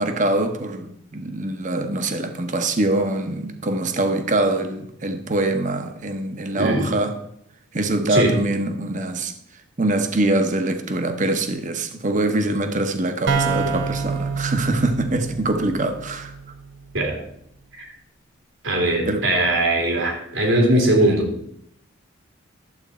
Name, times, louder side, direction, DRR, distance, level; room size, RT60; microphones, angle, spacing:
voice 1, 0.0-7.1 7.7-9.3 9.8-16.3 19.0-19.2, right 2 dB, 40° right, 1.0 m, -23 dB
voice 2, 6.5-6.9 8.1-8.3 16.9-17.2 17.8-17.9 18.6-21.3, right 1 dB, 80° right, 3.1 m, -20 dB
sound 1, 13.3-16.9, right 5 dB, 65° right, 0.8 m, -27 dB
11.5 x 8.0 x 4.3 m
head